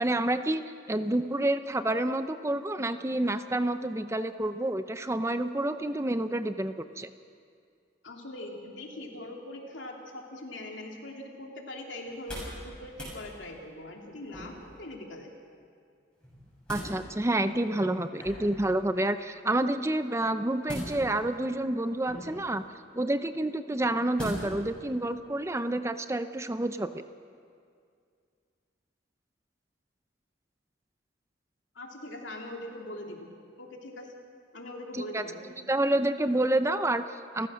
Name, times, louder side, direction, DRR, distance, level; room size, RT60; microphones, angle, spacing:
voice 1, 0.0-7.1 16.7-22.6 22.9-27.0 35.1-35.2 35.7-37.5, right 1 dB, 15° right, 10 dB, 0.6 m, -29 dB
voice 2, 8.0-15.3 31.7-33.3 33.6-34.2 34.5-35.6, left 1 dB, 85° left, 1 dB, 3.0 m, -42 dB
sound 1, 12.1-12.6 12.9-13.2 14.3-14.8 16.2-16.9 18.2-18.6 20.6-21.3 22.0-22.5 24.2-24.7 25.1-25.2, equal, 5° left, 7.2 m, -39 dB
29.0 x 15.0 x 6.3 m, 2.2 s
head